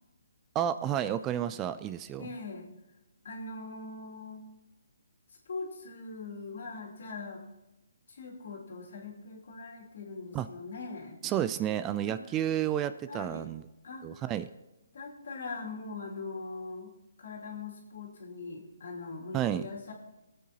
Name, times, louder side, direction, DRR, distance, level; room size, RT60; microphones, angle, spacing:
voice 1, 0.5-2.3 10.3-10.5 11.2-13.6 14.0-14.5 19.3-19.7, right 11 dB, 15° right, 13 dB, 0.3 m, -31 dB
voice 2, 2.2-2.7 3.2-4.4 5.5-7.4 8.1-11.2 12.1-12.2 13.1-13.5 13.8-14.2 14.9-16.9 17.2-19.9, left 3 dB, 70° left, -1 dB, 2.6 m, -41 dB
19.0 x 8.4 x 2.9 m, 1.0 s
hypercardioid pair, 160°, 0 cm